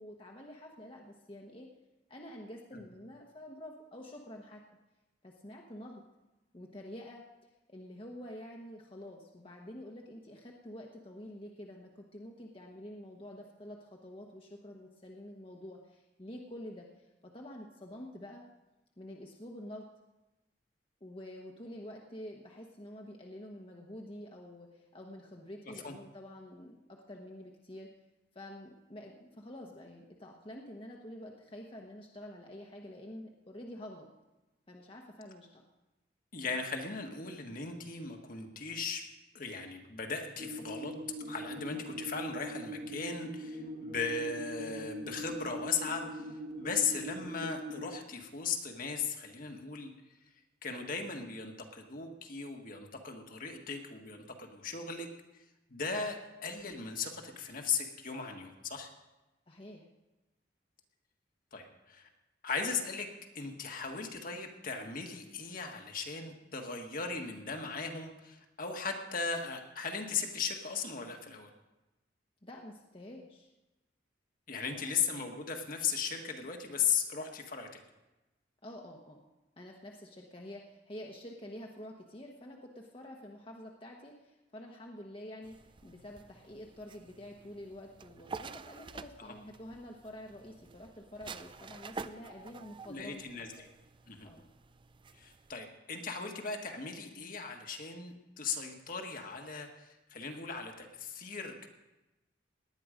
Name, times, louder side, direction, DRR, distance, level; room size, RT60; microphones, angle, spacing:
voice 1, 0.0-1.7 2.1-4.6 5.2-6.0 6.5-7.2 7.7-18.4 19.0-19.9 21.0-27.9 28.3-34.1 34.7-35.6 59.5-59.9 72.4-73.5 74.7-75.0 78.6-79.2 79.6-85.6 85.8-93.7 94.2-94.5, left 1 dB, 30° left, 0 dB, 1.2 m, -48 dB
voice 2, 36.3-39.0 39.3-40.9 41.3-49.9 50.6-55.1 55.3-55.4 55.7-58.9 61.5-62.1 62.4-63.1 63.3-71.5 74.5-77.8 89.2-89.3 92.8-93.7 94.1-94.3 95.1-101.7, left 5 dB, 45° left, 3 dB, 1.6 m, -37 dB
sound 1, 40.4-47.9, equal, 45° right, 1.7 m, -42 dB
sound 2, 85.4-95.6, right 4 dB, 25° right, 0.4 m, -49 dB
18.5 x 10.5 x 5.1 m, 1.0 s
head